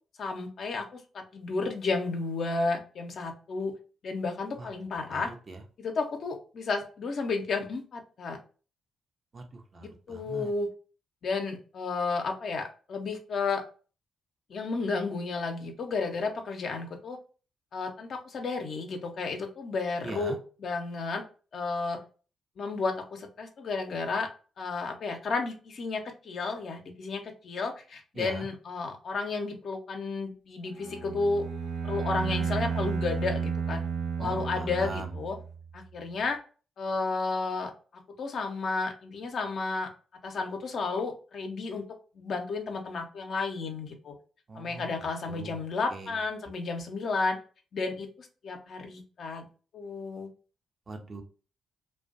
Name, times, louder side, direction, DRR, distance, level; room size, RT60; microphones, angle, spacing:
voice 1, 0.2-3.7 4.0-5.3 5.8-8.4 9.8-10.7 11.2-13.6 14.5-17.2 17.7-21.2 21.5-22.0 22.6-24.3 24.6-31.5 31.8-33.8 34.2-35.4 35.7-36.4 36.8-39.9 40.2-41.8 42.1-44.1 44.6-47.4 47.7-49.5 49.7-50.3, left 4 dB, 60° left, 4 dB, 0.5 m, -32 dB
voice 2, 5.1-5.6 9.3-10.5 20.0-20.4 28.2-28.5 34.2-35.1 44.5-44.8 45.3-45.6 45.9-46.1 50.9-51.2, right 3 dB, 45° right, 4 dB, 0.6 m, -40 dB
Bowed string instrument, 30.8-35.6, right 6 dB, 80° right, 1.0 m, -32 dB
2.4 x 2.1 x 2.4 m, 0.37 s
hypercardioid pair, 40°, 0 cm